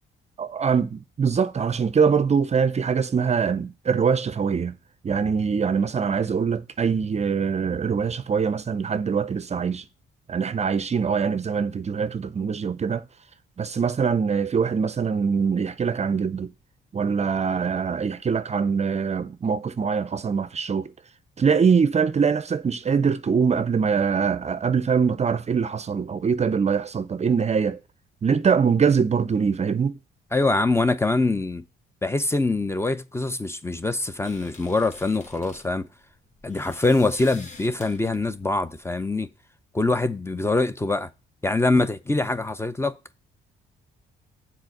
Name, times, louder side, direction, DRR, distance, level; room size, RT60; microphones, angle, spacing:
voice 1, 0.4-4.7 5.0-9.8 10.3-13.0 13.6-16.5 16.9-20.9 21.4-27.8 28.2-29.9, right 6 dB, 35° right, 0.5 m, -23 dB
voice 2, 30.3-31.6 32.0-35.9 36.4-39.3 39.7-41.1 41.4-43.0, left 2 dB, 10° left, 0.6 m, -24 dB
sound 1, 34.2-39.2, left 3 dB, 40° left, 1.8 m, -48 dB
7.3 x 4.2 x 6.5 m
cardioid pair, 90°, 20 cm